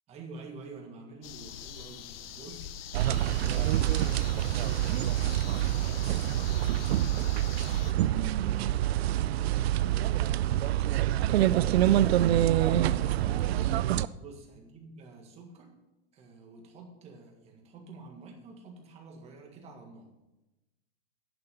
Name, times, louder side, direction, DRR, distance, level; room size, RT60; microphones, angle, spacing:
voice 1, 0.1-2.7 3.4-6.3 6.9-13.1 13.4-13.7 14.0-15.7 16.1-20.1, right 3 dB, 20° right, 1 dB, 1.7 m, -48 dB
sound 1, 1.2-7.9, left 10 dB, 65° left, 0.8 m, -44 dB
sound 2, 2.9-14.1, right 13 dB, 75° right, 0.5 m, -26 dB
10.5 x 5.9 x 6.8 m, 1.0 s
supercardioid pair, 160°, 32 cm